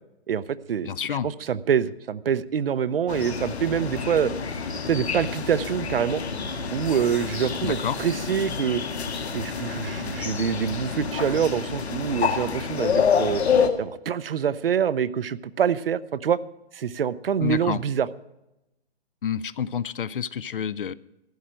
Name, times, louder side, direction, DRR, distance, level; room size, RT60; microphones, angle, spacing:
voice 1, 0.3-0.9 1.2-4.3 4.9-6.2 6.7-8.8 9.3-13.4 13.8-16.4 16.7-18.1, right 8 dB, 60° right, 17 dB, 0.6 m, -25 dB
voice 2, 0.8-1.3 7.6-8.0 17.4-17.8 19.2-20.9, left 8 dB, 55° left, 20 dB, 0.5 m, -28 dB
sound 1, 3.1-13.7, left 6 dB, 75° left, 1.7 m, -28 dB
14.0 x 6.4 x 8.8 m, 0.90 s
hypercardioid pair, 170°, 33 cm